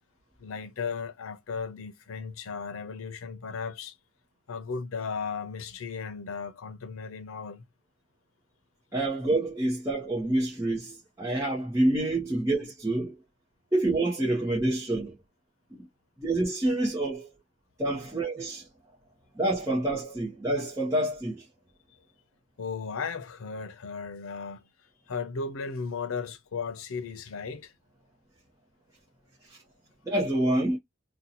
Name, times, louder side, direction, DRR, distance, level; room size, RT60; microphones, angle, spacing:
voice 1, 0.4-3.9 4.5-7.6 22.6-24.6 25.1-27.7, left 5 dB, 90° left, 0.6 m, -35 dB
voice 2, 8.9-13.2 13.7-15.2 15.7-15.9 16.2-17.3 17.8-18.7 19.4-21.4 30.1-30.8, right 1 dB, 15° right, 0.7 m, -27 dB
2.7 x 2.2 x 4.1 m
head